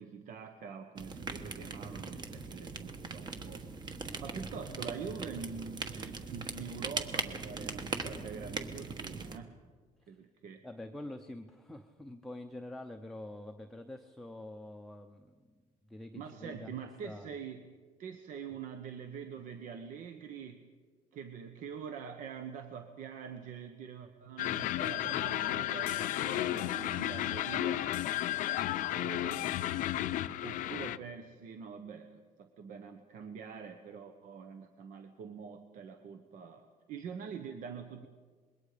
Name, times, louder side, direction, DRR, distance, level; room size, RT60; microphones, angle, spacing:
voice 1, 0.0-3.7 4.2-9.5 10.1-10.6 16.1-17.7 18.0-20.7 21.1-27.9 28.9-29.5 29.9-30.1 30.4-38.1, right 6 dB, 65° right, 6 dB, 1.2 m, -45 dB
sound 1, 1.0-9.4, right 4 dB, 30° right, 1.2 m, -40 dB
voice 2, 4.0-4.4 4.8-4.9 10.0-10.2 10.6-15.5 15.9-16.7 17.0-17.3, left 1 dB, ahead, 4 dB, 0.7 m, -46 dB
sound 2, 24.4-31.0, left 13 dB, 70° left, 0.6 m, -33 dB
26.0 x 21.5 x 5.1 m, 1.5 s
cardioid pair, 170°, 14 cm